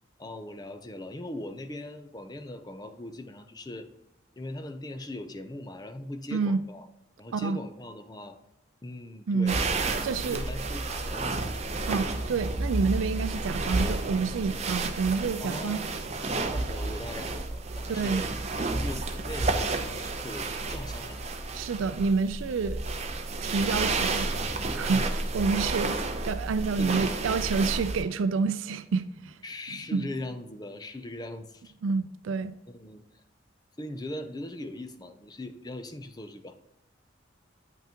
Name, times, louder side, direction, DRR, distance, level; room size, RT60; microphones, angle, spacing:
voice 1, 0.2-3.9 4.4-6.9 7.2-8.4 8.8-11.7 15.4-18.3 18.5-21.2 24.9-25.1 26.8-27.1 29.4-31.7 32.7-33.2 33.8-36.5, left 1 dB, 20° left, 0.5 m, -40 dB
voice 2, 6.3-6.6 7.3-7.6 9.3-9.6 10.0-10.4 11.9-15.8 17.9-18.3 21.5-22.8 23.4-24.3 24.7-29.4 29.9-30.1 31.8-32.5, right 4 dB, 85° right, 0.4 m, -28 dB
sound 1, 9.5-28.0, right 3 dB, 35° right, 0.6 m, -31 dB
9.0 x 5.8 x 2.9 m
head